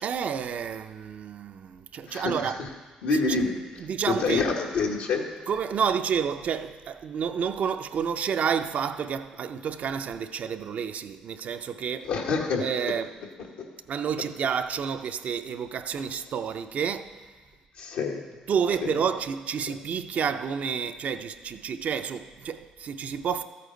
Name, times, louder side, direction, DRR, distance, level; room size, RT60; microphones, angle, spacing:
voice 1, 0.0-2.6 3.8-4.4 5.5-12.1 12.6-13.1 13.9-17.3 18.5-23.4, right 7 dB, 60° right, 0.5 m, -29 dB
voice 2, 2.0-2.5 3.0-3.6 4.0-5.2 12.0-12.7 17.8-18.2 19.7-19.8, left 4 dB, 80° left, 1.5 m, -26 dB
13.5 x 8.5 x 3.9 m
supercardioid pair, 65°, 3 cm